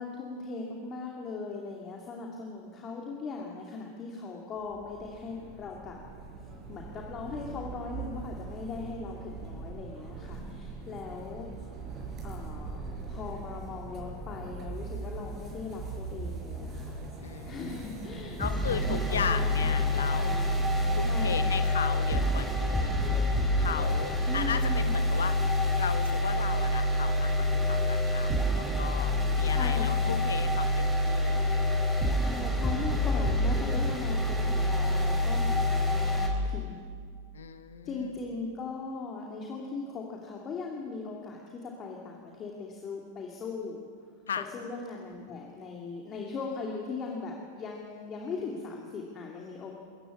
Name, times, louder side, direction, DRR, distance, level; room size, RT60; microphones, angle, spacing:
voice 1, 0.0-6.0 6.7-11.5 12.2-20.4 21.0-21.5 24.3-25.0 29.4-30.2 32.1-36.9 37.8-43.8 44.4-49.7, left 4 dB, 25° left, -1 dB, 2.7 m, -39 dB
sound 1, 4.6-21.3, right 3 dB, 30° right, 5.6 m, -41 dB
voice 2, 17.2-20.4 21.0-22.9 23.5-25.4 25.8-31.6 37.3-38.1 44.3-44.5, left 7 dB, 65° left, 10 dB, 1.3 m, -36 dB
sound 2, 18.4-36.3, left 1 dB, ahead, 3.8 m, -27 dB
24.5 x 15.0 x 8.7 m, 2.1 s
figure-of-eight pair, 90°, 0 cm